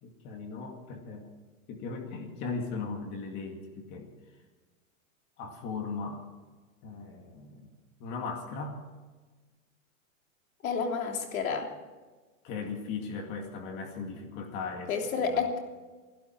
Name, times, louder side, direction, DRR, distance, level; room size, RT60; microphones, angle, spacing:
voice 1, 0.0-1.3 1.7-4.1 5.4-6.3 6.8-7.7 8.0-8.8 12.4-14.9 15.2-15.4, left 4 dB, 25° left, 4 dB, 2.1 m, -38 dB
voice 2, 10.6-11.7 14.9-15.6, left 5 dB, 80° left, 3 dB, 3.3 m, -30 dB
26.5 x 12.0 x 4.6 m, 1.3 s
supercardioid pair, 175°, 41 cm